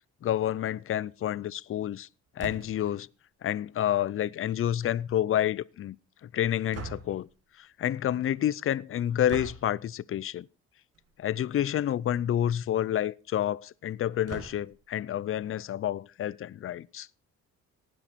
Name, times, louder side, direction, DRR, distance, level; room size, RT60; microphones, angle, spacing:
voice 1, 0.2-2.1 2.4-3.1 3.4-6.0 6.2-7.3 7.6-10.5 11.2-17.1, left 11 dB, 45° left, 0.5 m, -29 dB
sound 1, 2.4-2.9 6.7-7.3 9.3-9.7 10.9-11.2 11.6-11.7 11.9-12.0 14.3-14.9, right 6 dB, 55° right, 1.5 m, -42 dB
18.5 x 6.2 x 4.5 m
cardioid pair, 90°, 30 cm